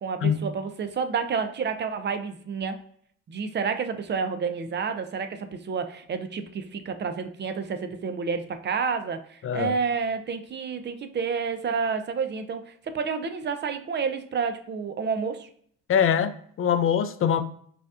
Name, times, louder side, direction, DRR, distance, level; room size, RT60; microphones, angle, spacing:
voice 1, 0.0-2.8 3.3-15.5, right 5 dB, 35° right, 0.5 m, -29 dB
voice 2, 9.4-9.7 15.9-17.4, left 8 dB, 45° left, 0.4 m, -23 dB
4.9 x 2.4 x 2.4 m
cardioid pair, 90°, 30 cm